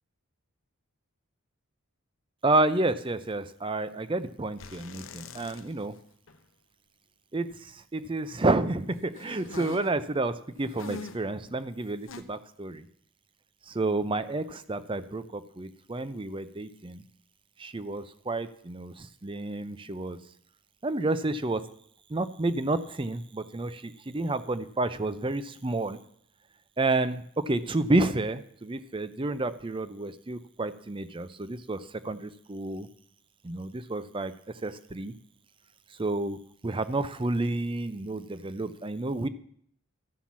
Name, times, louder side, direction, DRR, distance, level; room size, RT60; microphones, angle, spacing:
voice 1, 2.4-6.0 7.3-12.9 13.7-17.0 17.6-20.2 20.8-21.6 22.1-26.0 26.8-32.9 33.4-34.3 34.6-35.1 36.0-39.3, right 2 dB, 25° right, 13 dB, 0.5 m, -30 dB
sound 1, 4.6-6.0 6.3-6.4 9.1-10.0 10.7-11.3 12.1-12.2, left 3 dB, 65° left, 0.8 m, -42 dB
13.0 x 5.8 x 7.3 m, 0.64 s
head